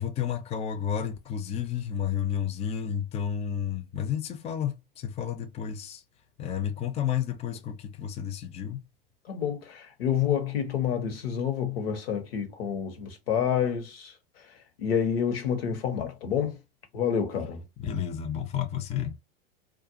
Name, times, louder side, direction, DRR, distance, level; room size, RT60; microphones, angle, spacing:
voice 1, 0.0-6.0 6.4-8.8 17.8-19.2, left 9 dB, 20° left, 0.5 m, -31 dB
voice 2, 9.3-14.1 14.8-16.6 16.9-17.6, left 8 dB, 80° left, 1.0 m, -28 dB
2.5 x 2.3 x 2.7 m
hypercardioid pair, 105°, 30 cm